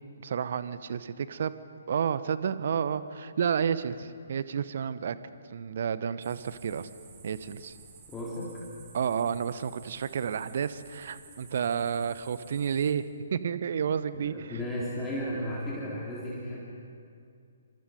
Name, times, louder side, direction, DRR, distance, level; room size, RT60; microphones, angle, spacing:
voice 1, 0.2-1.5 1.9-5.2 5.5-6.9 7.2-7.8 8.9-14.6, right 7 dB, 50° right, 14 dB, 1.0 m, -31 dB
sound 1, 6.2-12.9, right 4 dB, 30° right, 5.1 m, -53 dB
voice 2, 8.1-8.6 14.1-16.6, equal, 10° left, -6 dB, 3.7 m, -34 dB
28.5 x 26.0 x 5.3 m, 2.4 s
figure-of-eight pair, 130°, 0 cm